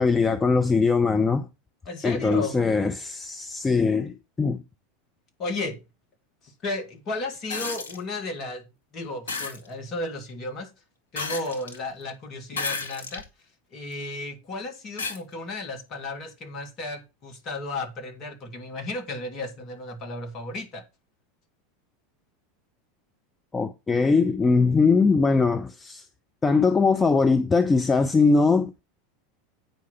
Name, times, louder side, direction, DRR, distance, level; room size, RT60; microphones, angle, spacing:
voice 1, 0.0-1.5 2.0-4.6 23.5-26.0 26.4-28.8, left 4 dB, 15° left, 0.6 m, -21 dB
voice 2, 1.9-2.6 5.4-5.8 6.4-8.6 8.9-10.7 11.1-13.2 13.7-20.8, left 2 dB, 35° left, 2.1 m, -34 dB
sound 1, 7.5-8.0 9.3-9.6 11.2-11.8 12.5-13.3 13.9-14.0 15.0-15.2 16.7-16.8, left 4 dB, 70° left, 1.4 m, -32 dB
9.2 x 4.8 x 5.6 m
figure-of-eight pair, 80°, 0 cm